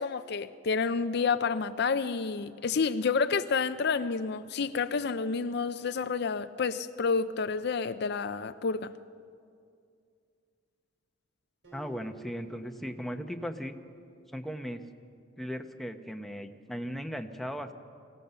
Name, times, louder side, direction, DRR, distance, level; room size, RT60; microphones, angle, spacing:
voice 1, 0.0-8.9, left 5 dB, 60° left, 0.5 m, -29 dB
Acoustic guitar, 11.6-15.1, right 4 dB, 70° right, 4.8 m, -53 dB
voice 2, 11.7-13.7 14.3-14.8 15.4-17.7, equal, ahead, 0.9 m, -37 dB
23.5 x 16.5 x 6.9 m
head